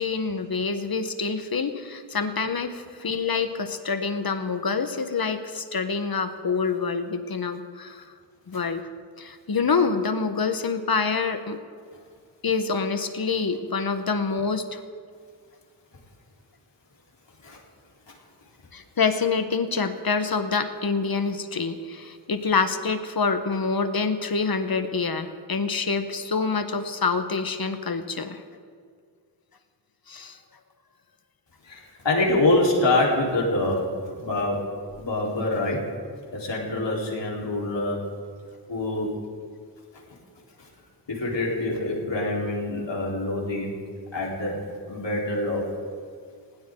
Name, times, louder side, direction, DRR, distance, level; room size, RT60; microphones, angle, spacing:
voice 1, 0.0-8.0 8.5-8.8 9.2-11.6 12.4-14.8 18.7-28.4 30.1-30.4, left 4 dB, 50° left, 9 dB, 1.4 m, -26 dB
voice 2, 31.7-33.9 34.1-34.6 35.0-35.8 36.3-38.0 38.7-39.1 41.1-43.7 44.1-44.6 44.9-45.7, left 2 dB, 70° left, -3 dB, 4.3 m, -25 dB
20.0 x 17.0 x 3.9 m, 2.1 s
cardioid pair, 60°, 45 cm